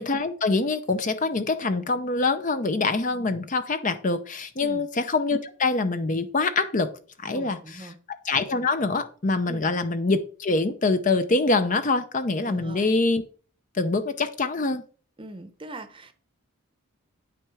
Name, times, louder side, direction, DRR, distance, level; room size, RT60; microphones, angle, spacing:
voice 1, 0.0-6.9 7.2-13.2 13.7-14.8, left 3 dB, 35° left, 10 dB, 0.6 m, -25 dB
voice 2, 7.3-8.0 9.5-9.7 12.4-12.9 15.2-16.1, right 2 dB, 25° right, 9 dB, 0.8 m, -40 dB
9.1 x 6.0 x 4.8 m, 0.41 s
head